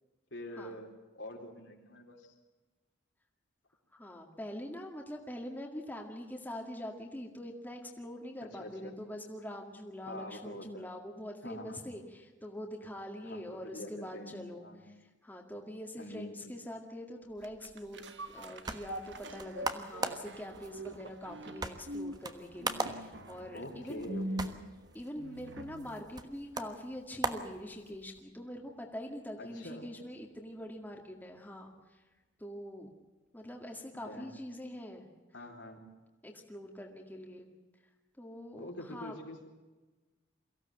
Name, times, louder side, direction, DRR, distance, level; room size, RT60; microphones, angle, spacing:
voice 1, 0.3-0.9 1.1-2.3 8.4-9.0 10.1-10.9 11.4-11.9 13.2-14.4 14.6-14.8 16.0-16.4 23.5-24.6 29.4-29.9 34.0-34.3 35.3-35.8 38.6-39.5, left 1 dB, 70° left, 1 dB, 3.9 m, -45 dB
voice 2, 3.9-18.1 18.3-24.1 24.9-32.0 32.4-32.9 33.3-35.1 36.2-37.5 38.2-39.2, left 1 dB, 10° left, 1 dB, 2.0 m, -44 dB
sound 1, 17.4-26.0 26.4-26.5, right 1 dB, 65° right, 1.4 m, -43 dB
sound 2, 18.3-28.2, right 3 dB, 20° right, 1.3 m, -41 dB
23.5 x 16.0 x 9.0 m, 1.2 s
head